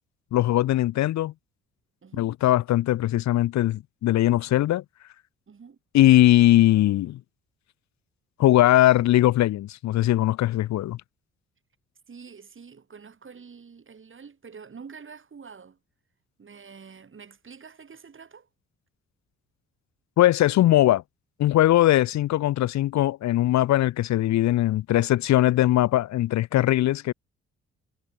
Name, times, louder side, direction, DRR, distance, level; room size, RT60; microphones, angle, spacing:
voice 1, 0.3-1.3 2.2-4.8 5.9-7.2 8.4-11.0 20.2-21.0 21.4-27.1, left 14 dB, 60° left, 1.1 m, -20 dB
voice 2, 5.5-5.8 12.1-15.8 16.4-18.5, right 5 dB, 40° right, 7.6 m, -46 dB
hypercardioid pair, 50°, 31 cm